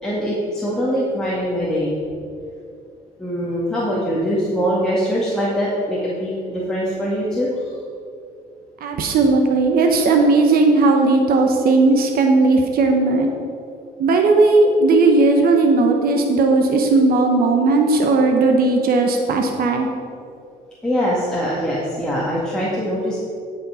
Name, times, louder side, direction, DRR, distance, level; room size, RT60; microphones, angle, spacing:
voice 1, 0.0-1.9 3.2-7.7 20.8-23.2, equal, 5° left, -8 dB, 1.8 m, -22 dB
voice 2, 8.8-13.3 14.0-19.9, right 3 dB, 65° right, 4 dB, 1.1 m, -16 dB
12.5 x 5.6 x 4.9 m, 2.4 s
cardioid pair, 110°, 17 cm